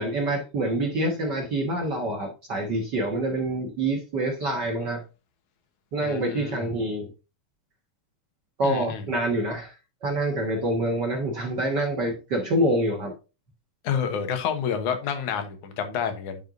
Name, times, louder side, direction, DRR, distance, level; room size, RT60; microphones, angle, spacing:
voice 1, 0.0-5.0 5.9-7.1 8.6-9.7 10.0-13.1, right 1 dB, 50° right, 1.4 m, -26 dB
voice 2, 6.0-6.6 8.6-9.1 13.8-16.4, left 7 dB, 80° left, 2.6 m, -29 dB
10.5 x 5.6 x 2.5 m
omnidirectional pair, 3.5 m